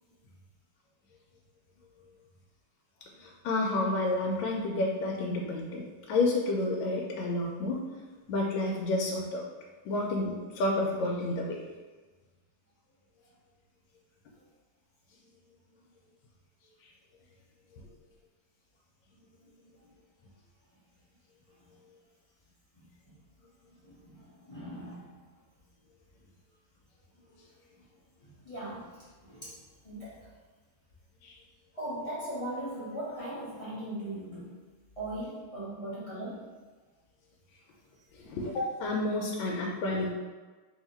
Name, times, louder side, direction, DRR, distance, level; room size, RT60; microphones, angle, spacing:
voice 1, 3.2-7.8 8.3-9.4 9.8-11.6 31.2-31.3 38.1-40.1, left 2 dB, 75° left, -2 dB, 1.3 m, -30 dB
voice 2, 23.8-25.2 28.2-30.3 31.7-34.5 35.0-36.5, right 1 dB, 40° left, -10 dB, 0.4 m, -39 dB
3.4 x 2.8 x 4.3 m, 1.3 s
omnidirectional pair, 2.2 m